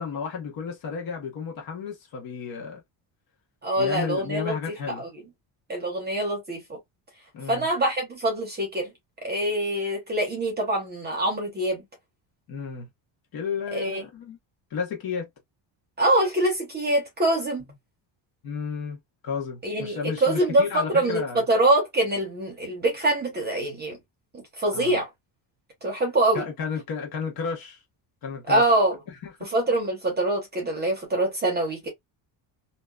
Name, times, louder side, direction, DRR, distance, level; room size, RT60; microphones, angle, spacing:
voice 1, 0.0-2.8 3.8-5.0 7.3-7.7 12.5-12.9 13.3-14.4 14.7-15.3 18.4-19.0 19.2-21.4 24.7-25.0 26.3-27.8 28.2-28.6 29.2-29.5, left 6 dB, 45° left, 1.1 m, -32 dB
voice 2, 3.6-4.5 5.0-5.1 5.7-6.8 7.5-8.9 9.2-11.8 13.7-14.0 16.0-17.6 19.6-24.0 24.3-25.1 25.8-26.4 28.5-29.0 29.4-31.9, right 1 dB, 20° right, 0.8 m, -24 dB
2.8 x 2.2 x 2.2 m
cardioid pair, 175°, 49 cm